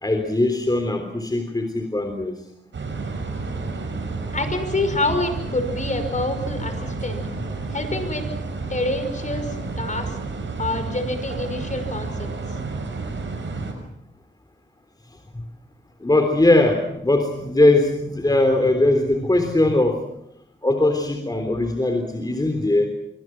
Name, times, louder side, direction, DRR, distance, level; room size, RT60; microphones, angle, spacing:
voice 1, 0.0-2.3 15.3-15.4 16.0-20.0 20.6-22.9, left 2 dB, 20° left, 5 dB, 3.5 m, -20 dB
sound 1, 2.7-13.7, right 3 dB, 85° right, 6.1 m, -30 dB
voice 2, 4.3-7.2 7.7-8.3 8.7-10.2 10.6-12.6, left 2 dB, 40° left, 8 dB, 5.9 m, -27 dB
26.5 x 25.0 x 6.0 m, 0.77 s
wide cardioid pair, 85°, 19 cm